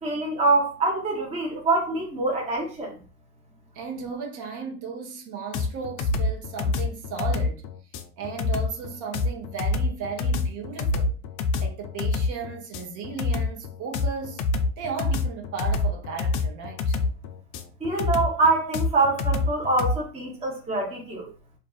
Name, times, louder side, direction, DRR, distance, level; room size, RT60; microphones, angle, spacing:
voice 1, 0.0-3.0 17.8-21.3, right 3 dB, 15° right, 0.8 m, -25 dB
voice 2, 3.7-7.6 8.2-11.2 11.6-14.4 14.8-17.0, right 5 dB, 45° right, 0.8 m, -35 dB
sound 1, 5.5-20.0, left 3 dB, 50° left, 0.5 m, -26 dB
2.5 x 2.4 x 2.3 m
supercardioid pair, 105°, 43 cm